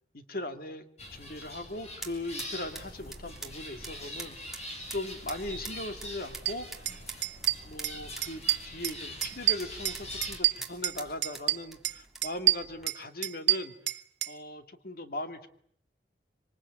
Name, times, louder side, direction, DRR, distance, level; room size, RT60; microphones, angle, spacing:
voice 1, 0.1-4.6 4.9-6.7 7.7-13.7 14.3-15.5, left 1 dB, 55° left, 8 dB, 2.4 m, -39 dB
sound 1, 1.0-10.4, left 1 dB, 40° left, 7.2 m, -43 dB
sound 2, 1.2-12.9, right 3 dB, ahead, 3.1 m, -47 dB
sound 3, 6.5-6.6 6.9-7.0 7.2-8.0 8.2-9.0 9.2-11.0 11.2-12.0 12.2-14.3, right 15 dB, 80° right, 1.1 m, -27 dB
26.5 x 25.0 x 8.8 m, 0.66 s
head